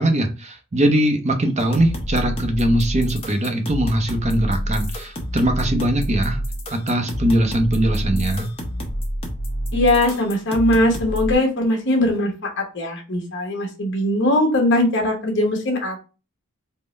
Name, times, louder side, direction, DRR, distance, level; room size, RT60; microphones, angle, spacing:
voice 1, 0.0-6.4 6.7-8.5, right 1 dB, 30° right, 5 dB, 0.6 m, -21 dB
sound 1, 1.6-11.3, equal, 25° left, 0.8 m, -28 dB
voice 2, 9.7-16.0, left 1 dB, 55° left, 2 dB, 1.1 m, -20 dB
3.7 x 2.1 x 3.9 m, 0.33 s
head